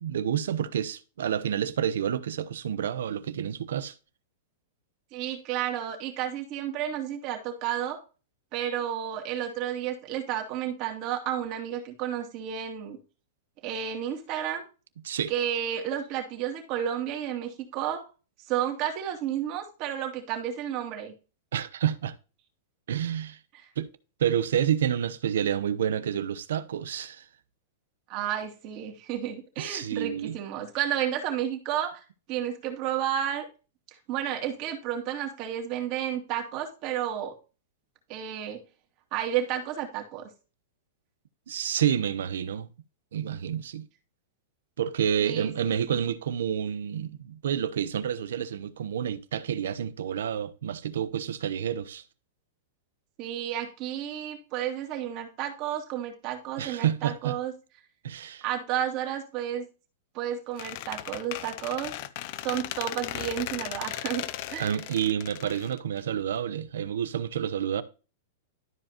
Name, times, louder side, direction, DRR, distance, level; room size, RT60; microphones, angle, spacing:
voice 1, 0.0-3.9 15.0-15.3 21.5-22.1 22.9-23.4 23.8-23.9 24.2-27.3 29.6-30.4 41.5-42.7 43.1-43.9 44.8-52.0 56.6-57.4 58.0-58.4 64.6-67.8, right 9 dB, 85° right, 0.8 m, -29 dB
voice 2, 5.1-8.0 8.5-13.0 13.6-14.6 15.3-18.0 18.5-21.1 28.1-32.0 32.3-33.5 34.1-37.3 38.1-38.6 39.1-40.3 45.2-46.0 53.2-57.5 58.4-59.7 60.1-61.9 62.4-64.8, right 10 dB, 40° right, 2.5 m, -31 dB
Squeak, 60.6-66.4, left 15 dB, 50° left, 0.6 m, -37 dB
12.5 x 4.9 x 3.0 m
supercardioid pair, 145°, 0 cm